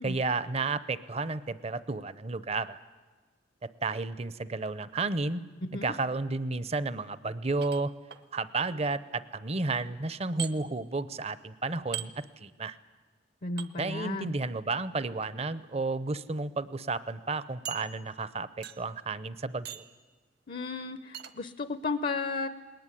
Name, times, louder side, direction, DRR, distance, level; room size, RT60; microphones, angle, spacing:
voice 1, 0.0-2.8 3.6-5.4 5.8-7.9 8.3-12.8 13.8-19.8, right 3 dB, 35° right, 16 dB, 0.7 m, -32 dB
sound 1, 7.6-8.2 10.4-10.5 11.9-12.1 13.6-13.7 15.0-15.3 16.1-16.2 16.5-16.6 17.7-18.3 18.6-19.0 19.7-20.0 21.1-21.3, right 10 dB, 60° right, 0.9 m, -39 dB
voice 2, 13.4-14.3 20.5-22.5, left 3 dB, 50° left, 12 dB, 0.6 m, -34 dB
20.0 x 18.5 x 9.9 m, 1.4 s
head